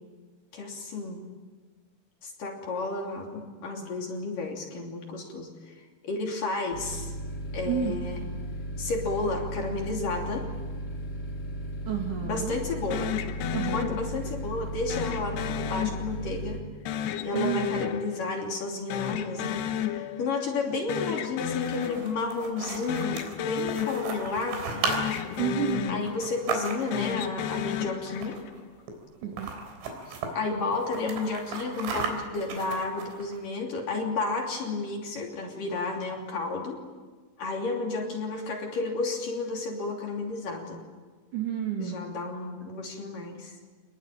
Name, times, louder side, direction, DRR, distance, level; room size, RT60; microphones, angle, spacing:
voice 1, 0.5-1.2 2.2-7.1 7.5-8.2 8.8-10.5 12.2-13.1 13.7-16.6 17.2-24.8 25.9-28.4 30.3-36.8 37.4-40.8 41.8-43.6, left 3 dB, 45° left, 1 dB, 4.2 m, -32 dB
sound 1, 6.7-16.6, right 1 dB, 25° left, 4.0 m, -36 dB
voice 2, 11.9-12.6 13.5-13.8 17.3-17.7 25.4-26.0 29.2-29.5 41.3-42.0, right 8 dB, 50° right, 1 dB, 3.1 m, -30 dB
sound 2, 12.9-14.4 14.9-16.4 16.9-18.6 18.9-20.4 20.7-22.4 22.8-24.6 24.9-26.4 26.8-28.6, left 9 dB, 70° left, 2.9 m, -33 dB
sound 3, 21.5-27.1 28.1-28.6 28.9-29.0 29.2-30.3 30.7-33.4, right 4 dB, 80° right, 6.1 m, -35 dB
27.0 x 21.0 x 9.1 m, 1.3 s
omnidirectional pair, 5.6 m